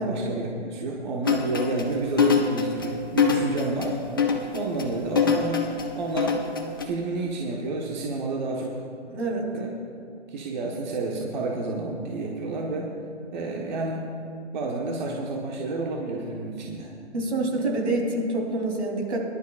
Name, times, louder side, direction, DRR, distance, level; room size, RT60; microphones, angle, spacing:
voice 1, 0.0-3.9 4.5-5.7 6.0-6.4 6.8-8.8 9.5-9.7 10.3-12.9 13.3-14.1 14.5-16.9, right 2 dB, 40° right, -1 dB, 1.3 m, -30 dB
sound 1, 1.2-6.9, left 6 dB, 20° left, 0.5 m, -24 dB
voice 2, 9.1-9.5 17.1-19.2, right 2 dB, 75° right, 0 dB, 3.4 m, -27 dB
22.0 x 11.5 x 2.4 m, 2.4 s
hypercardioid pair, 160°, 35 cm